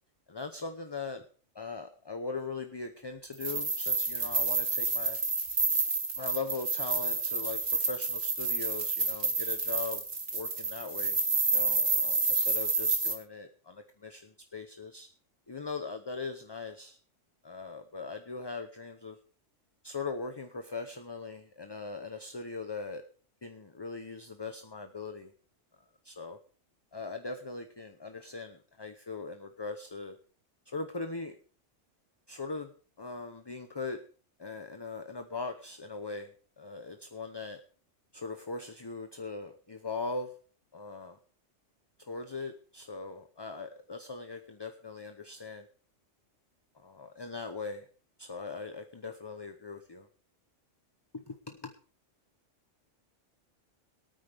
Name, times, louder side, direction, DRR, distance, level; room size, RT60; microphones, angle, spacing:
voice 1, 0.3-1.2 1.5-5.2 6.2-10.0 10.3-11.2 11.5-15.1 15.5-17.0 17.4-19.2 19.8-23.0 23.4-25.3 26.0-26.4 26.9-30.2 30.7-31.4 32.3-32.7 33.0-34.0 34.4-36.3 36.6-37.6 38.1-40.3 40.7-41.2 42.1-45.6 46.8-47.8 48.2-50.1 51.3-51.4 51.6-51.7, left 4 dB, 25° left, 7 dB, 0.7 m, -40 dB
sound 1, 3.3-13.1, right 3 dB, 50° right, 2.0 m, -29 dB
22.0 x 9.3 x 3.4 m, 0.42 s
omnidirectional pair, 1.3 m